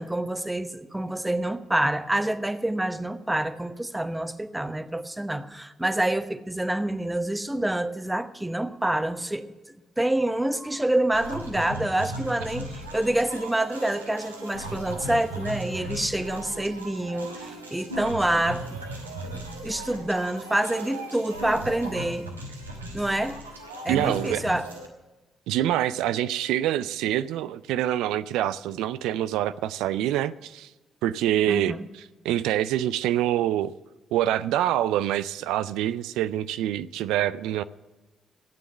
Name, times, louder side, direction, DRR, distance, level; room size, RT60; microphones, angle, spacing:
voice 1, 0.0-18.8 19.3-22.3 22.9-23.4 23.8-24.7 31.5-31.9, right 1 dB, 10° right, 11 dB, 1.0 m, -27 dB
sound 1, 11.1-24.9, right 2 dB, 85° right, 1.3 m, -37 dB
voice 2, 23.9-24.4 25.5-30.7 31.0-33.7 34.1-37.6, right 12 dB, 65° right, 15 dB, 0.4 m, -26 dB
14.0 x 9.2 x 7.0 m, 1.1 s
figure-of-eight pair, 40°, 0 cm